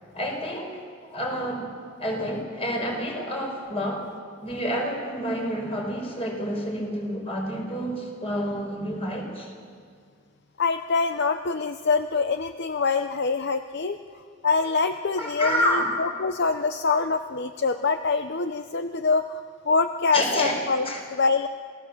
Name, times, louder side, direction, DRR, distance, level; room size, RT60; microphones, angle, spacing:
voice 1, 0.1-0.8 1.1-1.7 2.0-4.1 4.4-9.5 15.2-15.9 20.1-20.5 20.8-21.0, equal, 30° left, 1 dB, 5.1 m, -28 dB
voice 2, 10.6-14.0 14.4-21.5, left 4 dB, 60° left, 8 dB, 0.7 m, -25 dB
28.5 x 17.5 x 7.2 m, 2.1 s
head